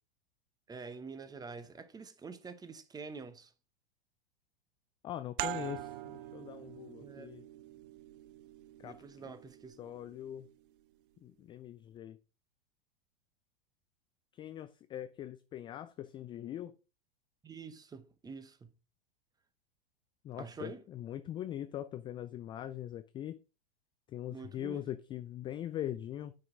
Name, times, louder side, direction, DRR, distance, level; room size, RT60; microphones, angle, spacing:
voice 1, 0.7-3.5 7.0-7.3 8.8-10.0 17.4-18.7 20.4-20.8 24.3-24.9, right 4 dB, 15° right, 0.9 m, -47 dB
voice 2, 5.0-7.5 8.8-9.0 9.8-10.5 11.2-12.2 14.3-16.7 20.2-23.4 24.1-26.3, left 11 dB, 15° left, 0.3 m, -42 dB
sound 1, 5.4-10.7, right 14 dB, 60° right, 0.5 m, -44 dB
9.3 x 5.3 x 3.7 m
figure-of-eight pair, 95°, 30 cm